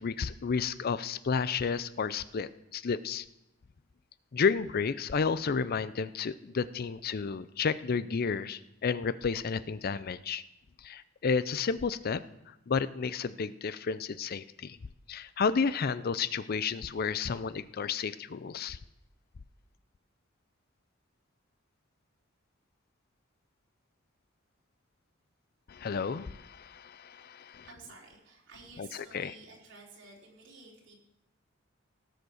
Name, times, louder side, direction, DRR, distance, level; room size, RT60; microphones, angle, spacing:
voice 1, 0.0-3.2 4.3-10.4 10.8-12.2 12.7-14.8 15.1-18.8 25.7-27.7 28.8-28.9 29.1-29.3, left 5 dB, 50° left, 16 dB, 0.5 m, -31 dB
voice 2, 27.6-30.9, right 3 dB, 65° right, -3 dB, 4.2 m, -52 dB
18.0 x 7.9 x 6.4 m, 0.89 s
head